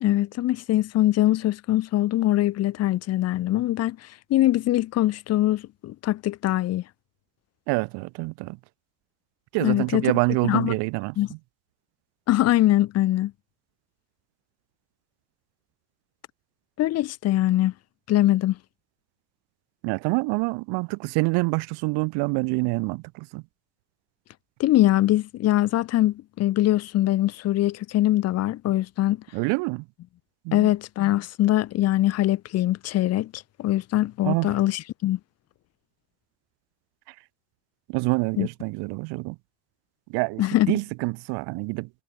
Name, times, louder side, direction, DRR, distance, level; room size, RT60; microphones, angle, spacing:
voice 1, 0.0-4.0 4.3-6.8 9.6-10.1 10.5-10.7 11.2-11.3 12.3-13.3 16.8-17.7 18.1-18.6 24.6-29.2 30.5-35.2 38.4-38.5 40.4-40.7, left 14 dB, 35° left, 0.5 m, -22 dB
voice 2, 7.7-8.6 9.5-11.4 19.8-23.4 29.3-29.8 30.4-30.7 34.2-34.6 37.1-37.2 37.9-39.4 40.1-41.9, right 28 dB, 65° right, 0.7 m, -26 dB
hypercardioid pair, 55°, 43 cm